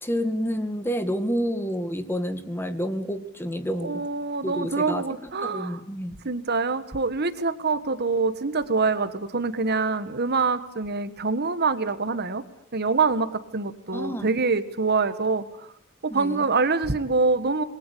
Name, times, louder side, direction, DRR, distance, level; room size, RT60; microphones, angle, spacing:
voice 1, 0.0-4.0 4.4-6.2 13.9-14.3 16.1-16.5, equal, 10° left, 9 dB, 2.1 m, -29 dB
voice 2, 3.8-5.8 6.2-12.4 12.7-15.4 16.0-17.6, right 4 dB, 50° right, 12 dB, 1.5 m, -25 dB
27.5 x 22.5 x 8.5 m, 0.69 s
head